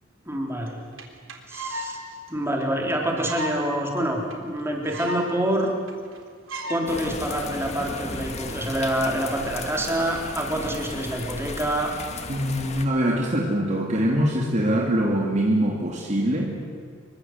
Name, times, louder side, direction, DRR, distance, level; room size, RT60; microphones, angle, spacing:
voice 1, 0.3-0.8 1.5-2.0 2.3-5.7 6.7-11.9, right 1 dB, 15° right, 0 dB, 4.0 m, -26 dB
sound 1, 0.7-0.8 1.0-1.1 1.3-1.9 2.3-2.4 2.6-2.7 3.2-3.6 4.0-4.1 4.3-4.4 4.6-5.3 5.6-5.7 5.9-6.2 6.5-6.8 7.4-7.7, right 1 dB, 80° right, 3.4 m, -34 dB
sound 2, 6.9-12.9, left 3 dB, 35° left, 2.0 m, -35 dB
voice 2, 12.3-16.6, right 1 dB, 35° right, 0 dB, 2.6 m, -23 dB
27.0 x 23.0 x 8.1 m, 2.1 s
head